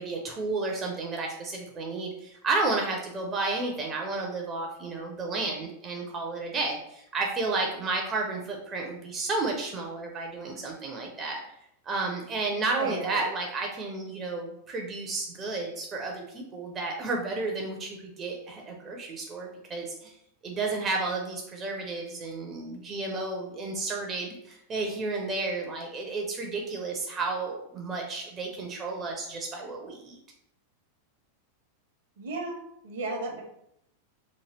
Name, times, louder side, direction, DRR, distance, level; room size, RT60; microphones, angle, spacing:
voice 1, 0.0-11.4 11.9-20.1 20.4-30.2, right 3 dB, 25° right, 1 dB, 0.5 m, -32 dB
voice 2, 12.8-13.3 32.2-33.4, right 2 dB, 60° right, 1 dB, 0.7 m, -34 dB
3.0 x 2.2 x 3.2 m, 0.77 s
figure-of-eight pair, 90°, 0 cm